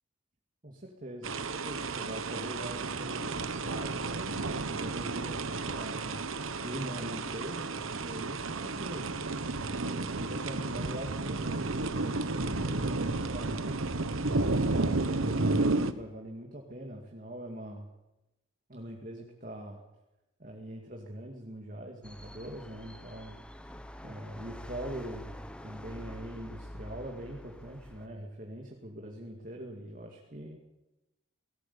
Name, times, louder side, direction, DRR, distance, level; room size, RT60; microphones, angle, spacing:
voice 1, 0.6-9.2 9.9-17.9 18.7-19.8 20.4-30.6, right 1 dB, 40° right, 1 dB, 2.3 m, -43 dB
sound 1, 1.2-15.9, right 3 dB, 80° right, 1.2 m, -32 dB
sound 2, 22.0-28.1, equal, 5° left, 1.0 m, -46 dB
18.5 x 16.5 x 8.6 m, 0.97 s
head